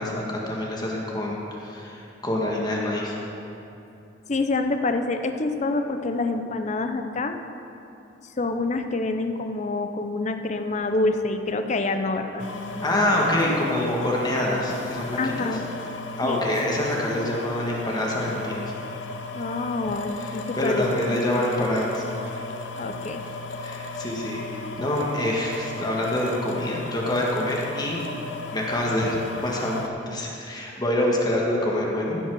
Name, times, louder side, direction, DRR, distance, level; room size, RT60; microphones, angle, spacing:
voice 1, 0.0-3.1 12.8-15.5 16.2-18.6 20.6-22.0 23.6-28.0 28.5-29.8 30.1-32.2, left 1 dB, 25° left, -3 dB, 1.5 m, -26 dB
voice 2, 4.3-7.4 8.4-13.0 15.2-15.6 16.2-16.4 19.3-20.8 22.8-23.2, left 3 dB, 40° left, 7 dB, 0.6 m, -27 dB
sound 1, 12.4-29.9, left 3 dB, 80° left, 0.7 m, -36 dB
15.5 x 5.5 x 6.2 m, 2.8 s
head